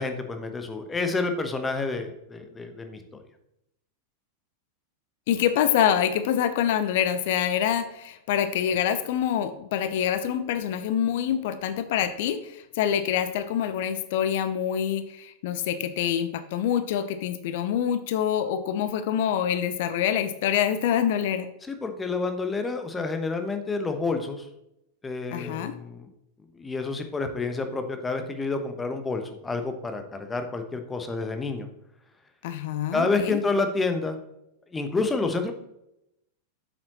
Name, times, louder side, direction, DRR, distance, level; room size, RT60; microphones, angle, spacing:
voice 1, 0.0-3.2 21.7-24.5 25.0-26.1 26.5-31.7 32.9-34.2 34.7-35.5, left 3 dB, 15° left, 7 dB, 1.1 m, -29 dB
voice 2, 5.3-21.5 25.3-25.8 32.4-33.4, left 9 dB, 50° left, 11 dB, 0.6 m, -26 dB
8.6 x 7.6 x 3.0 m, 0.82 s
figure-of-eight pair, 90°, 0 cm